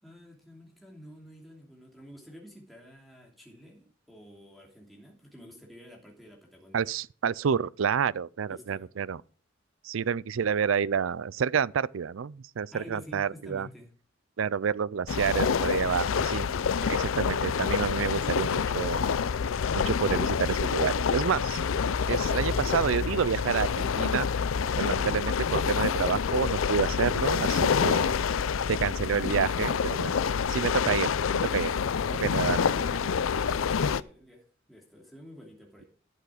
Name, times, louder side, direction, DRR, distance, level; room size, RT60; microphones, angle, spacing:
voice 1, 0.0-6.9 8.5-8.9 12.7-13.9 33.5-35.8, equal, ahead, 2.8 m, -49 dB
voice 2, 6.7-9.2 9.8-13.7 14.4-16.5 16.9-19.0 19.7-21.6 22.1-24.3 24.8-28.1 28.7-30.2 30.5-31.1 31.5-31.7 32.2-33.0, right 6 dB, 85° right, 0.5 m, -29 dB
sound 1, 15.1-34.0, left 6 dB, 90° left, 0.5 m, -27 dB
12.0 x 8.4 x 5.0 m
head